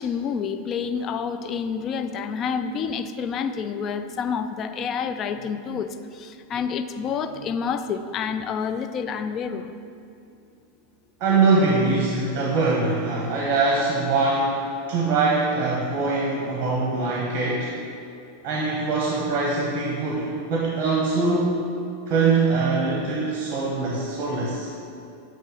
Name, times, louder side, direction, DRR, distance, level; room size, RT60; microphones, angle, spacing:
voice 1, 0.0-9.7, left 6 dB, 40° left, 9 dB, 0.4 m, -28 dB
voice 2, 11.2-14.6 14.9-17.7 18.4-21.6 22.1-24.7, right 3 dB, 45° right, -3 dB, 1.1 m, -23 dB
8.0 x 3.1 x 5.5 m, 2.6 s
hypercardioid pair, 100°, 0 cm